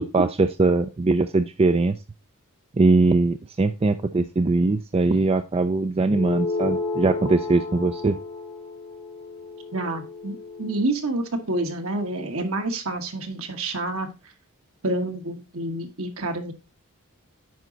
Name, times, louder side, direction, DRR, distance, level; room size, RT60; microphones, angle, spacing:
voice 1, 0.0-2.0 2.8-8.2, right 3 dB, 25° right, 10 dB, 0.4 m, -21 dB
sound 1, 6.1-10.9, left 3 dB, 20° left, 0.9 m, -32 dB
voice 2, 9.7-14.1 14.8-16.5, right 2 dB, 65° right, 5 dB, 1.6 m, -28 dB
9.4 x 5.1 x 3.9 m, 0.27 s
head